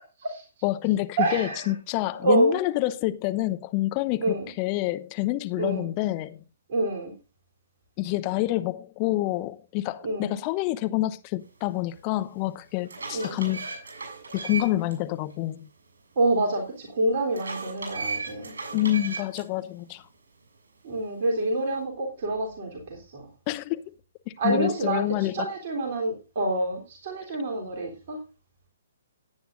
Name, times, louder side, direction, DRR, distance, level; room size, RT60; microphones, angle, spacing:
voice 1, 0.6-6.4 8.0-13.7 14.3-15.7 18.7-20.0 23.5-23.8 24.4-25.5, left 16 dB, 30° left, 0.8 m, -27 dB
voice 2, 1.2-1.6 2.2-2.6 4.2-4.5 5.6-5.9 6.7-7.1 10.0-10.4 13.1-13.4 16.1-18.5 20.8-23.2 24.4-25.0 25.3-28.2, right 2 dB, 40° right, 3.4 m, -27 dB
sound 1, 11.9-12.0 12.6-14.9 15.3-15.4 17.3-19.4, right 4 dB, 60° right, 7.4 m, -36 dB
17.0 x 9.3 x 2.6 m
figure-of-eight pair, 125°, 0 cm